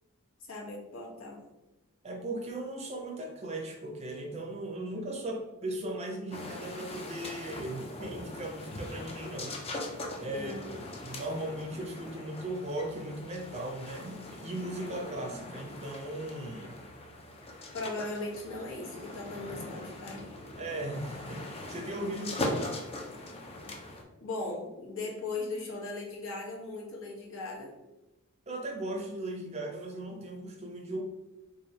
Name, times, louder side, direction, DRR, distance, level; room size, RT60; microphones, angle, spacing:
voice 1, 0.4-1.4 10.3-10.7 17.7-20.3 24.2-27.7, left 3 dB, 60° left, -1 dB, 1.0 m, -38 dB
voice 2, 2.0-9.6 10.2-10.6 11.0-16.8 20.6-22.8 28.5-31.0, right 1 dB, 30° right, 1 dB, 0.6 m, -37 dB
sound 1, 6.3-24.0, left 1 dB, 25° left, 0.5 m, -41 dB
3.2 x 2.6 x 4.0 m, 1.0 s
head